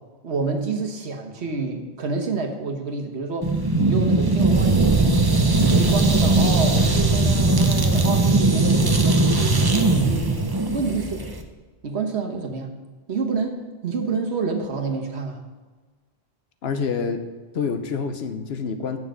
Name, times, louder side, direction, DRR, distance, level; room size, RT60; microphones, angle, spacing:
voice 1, 0.2-5.2 5.6-11.2 11.8-12.7 13.1-13.6 13.8-15.4, right 4 dB, 75° right, 3 dB, 1.4 m, -28 dB
sound 1, 3.4-11.4, right 2 dB, 25° right, 0.6 m, -19 dB
voice 2, 16.6-17.2 17.5-19.0, left 5 dB, 75° left, 8 dB, 1.0 m, -27 dB
7.2 x 6.2 x 7.5 m, 1.3 s
omnidirectional pair, 1.1 m